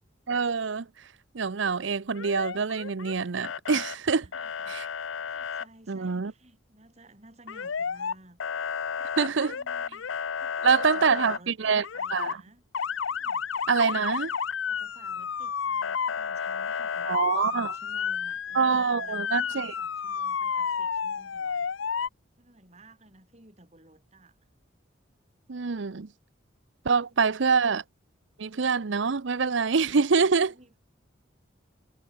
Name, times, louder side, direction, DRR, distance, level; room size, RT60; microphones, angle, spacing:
voice 1, 0.3-0.9 1.3-4.3 4.7-4.8 5.9-6.3 9.2-9.6 10.6-11.8 12.1-12.3 13.7-14.3 17.1-17.7 18.5-19.7 25.5-26.1 26.8-27.8 28.4-30.5, right 5 dB, 70° right, 0.7 m, -25 dB
Motor vehicle (road) / Siren, 2.1-3.1 3.4-3.9 4.3-5.6 7.5-8.1 8.4-11.4 11.8-12.3 12.7-22.1, left 6 dB, 80° left, 0.7 m, -31 dB
voice 2, 4.1-4.8 5.2-8.4 9.3-12.6 13.1-13.7 14.1-14.3 14.7-21.7 22.4-24.4 29.8-30.8, right 2 dB, 35° right, 3.9 m, -55 dB
head